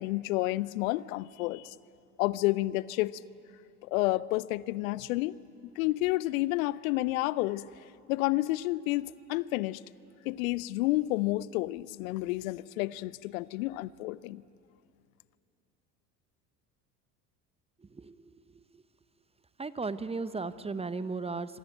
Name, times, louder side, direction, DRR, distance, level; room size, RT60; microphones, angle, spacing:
voice 1, 0.0-1.7 2.2-3.2 3.8-5.4 5.8-7.7 8.1-9.8 10.3-14.4, left 18 dB, 60° left, 21 dB, 0.6 m, -30 dB
voice 2, 19.6-21.6, right 4 dB, 10° right, 15 dB, 0.8 m, -35 dB
26.5 x 22.5 x 9.1 m, 2.5 s
figure-of-eight pair, 65°, 48 cm